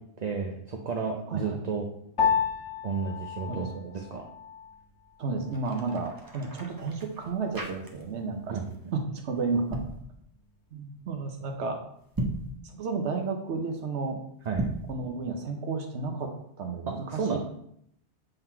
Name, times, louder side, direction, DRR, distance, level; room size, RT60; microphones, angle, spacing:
voice 1, 0.2-1.9 2.8-3.7 3.9-4.3 8.5-8.9 14.4-14.7 16.9-17.4, right 5 dB, 45° right, 3 dB, 0.7 m, -32 dB
Piano, 2.2-11.8, left 7 dB, 90° left, 1.3 m, -35 dB
voice 2, 3.5-3.9 5.2-8.6 8.9-9.8 10.7-11.8 12.7-14.2 14.9-16.3 16.6-17.4, right 4 dB, 85° right, 4 dB, 1.1 m, -32 dB
sound 1, 5.4-8.3 8.6-8.9 9.5-10.0 12.0-12.5 14.4-14.9, right 1 dB, 20° right, 0.9 m, -36 dB
7.9 x 4.0 x 4.4 m, 0.71 s
omnidirectional pair, 1.1 m